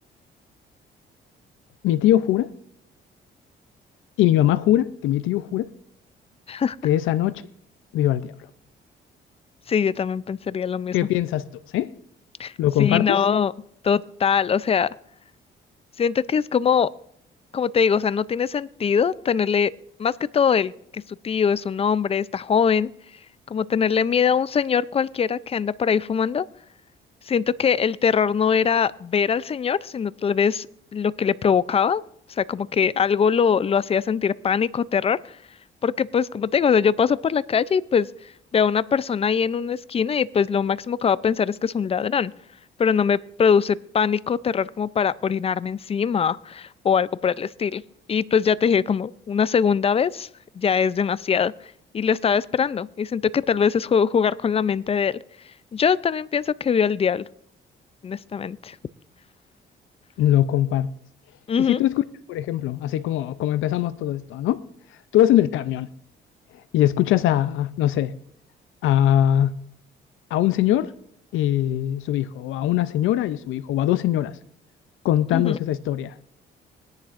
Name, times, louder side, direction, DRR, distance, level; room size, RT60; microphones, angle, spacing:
voice 1, 1.8-2.5 4.2-5.7 6.8-7.3 7.9-8.3 10.9-11.5 11.7-11.9 12.6-13.2 60.2-60.9 61.6-62.0 62.3-64.6 65.1-65.9 66.7-68.1 68.8-69.6 70.3-70.9 71.3-74.3 75.0-76.1, left 12 dB, 85° left, 0.5 m, -21 dB
voice 2, 9.7-10.9 12.4-12.5 12.8-13.5 13.8-14.9 16.0-16.9 17.5-19.7 20.0-22.9 23.5-26.4 27.3-30.7 30.9-32.0 32.3-35.4 35.8-38.1 38.5-42.3 42.8-47.8 48.1-50.3 50.6-51.5 51.9-55.2 55.7-57.3 58.0-58.8 61.5-61.8 75.3-75.6, left 7 dB, 30° left, 0.4 m, -22 dB
21.5 x 10.5 x 2.5 m
cardioid pair, 90°, 20 cm